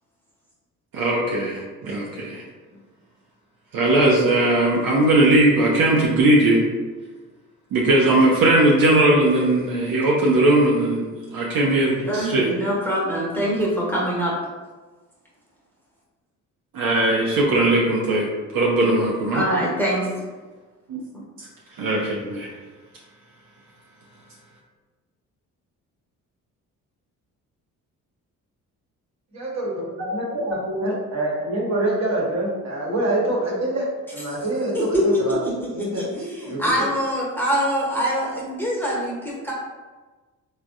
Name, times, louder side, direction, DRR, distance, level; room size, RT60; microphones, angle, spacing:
voice 1, 0.9-2.4 3.7-6.6 7.7-11.0 11.3-12.5 16.7-18.3 18.5-19.4 20.9-21.0 21.4-21.5 21.8-22.5, right 1 dB, 60° right, -3 dB, 0.7 m, -19 dB
voice 2, 12.0-14.3 19.3-20.1 34.7-39.5, equal, 5° left, -5 dB, 1.1 m, -24 dB
voice 3, 29.3-34.8 35.0-35.4 35.7-36.1 36.4-36.9, right 1 dB, 45° right, -4 dB, 1.2 m, -25 dB
3.3 x 2.2 x 2.6 m, 1.3 s
hypercardioid pair, 50°, 39 cm